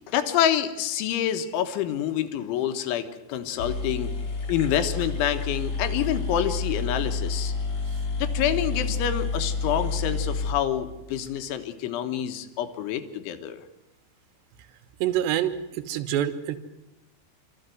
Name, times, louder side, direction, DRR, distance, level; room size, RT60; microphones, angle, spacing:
voice 1, 0.1-4.1 4.5-7.5 8.2-13.6, left 10 dB, 80° left, 8 dB, 3.7 m, -27 dB
sound 1, 3.3-3.4 3.6-11.4, left 4 dB, 40° left, 1.6 m, -29 dB
voice 2, 15.0-16.6, right 11 dB, 70° right, 8 dB, 3.3 m, -26 dB
26.0 x 14.0 x 9.3 m, 0.96 s
omnidirectional pair, 5.4 m